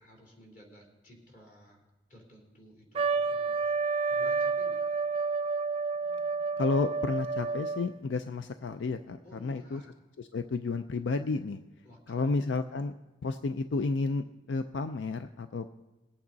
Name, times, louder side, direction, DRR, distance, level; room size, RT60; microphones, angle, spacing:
voice 1, 0.0-1.8 2.1-5.0 9.2-9.9 11.8-12.4, equal, 45° left, -1 dB, 3.5 m, -55 dB
Trumpet, 2.9-8.0, right 4 dB, 30° right, 0.3 m, -30 dB
voice 2, 6.6-9.8 10.2-11.6 12.1-12.9 13.2-15.7, left 3 dB, 80° left, 9 dB, 0.4 m, -31 dB
21.0 x 8.7 x 4.0 m, 1.1 s
head